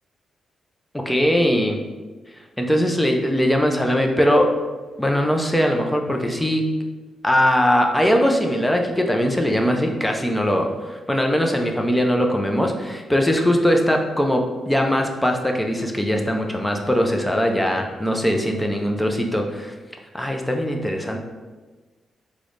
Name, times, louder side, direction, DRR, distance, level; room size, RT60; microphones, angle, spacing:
voice 1, 0.9-1.8 2.6-4.5 5.0-6.7 7.2-19.7 20.1-21.2, equal, 5° left, 2 dB, 0.3 m, -20 dB
3.1 x 2.0 x 3.7 m, 1.3 s
cardioid pair, 135°, 0 cm